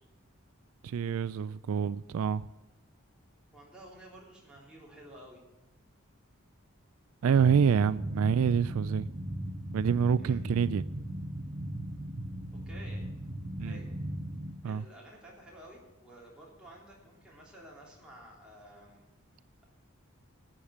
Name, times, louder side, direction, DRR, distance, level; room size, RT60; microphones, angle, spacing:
voice 1, 0.8-2.5 7.2-9.1 9.7-10.8 13.6-13.8 14.6-14.8, right 7 dB, 80° right, 0.3 m, -27 dB
voice 2, 3.5-5.4 10.2-10.4 12.5-13.0 13.6-13.9 14.6-19.1, right 1 dB, 5° right, 3.4 m, -52 dB
sound 1, 7.3-14.5, right 1 dB, 30° right, 1.0 m, -38 dB
11.5 x 8.8 x 7.1 m
head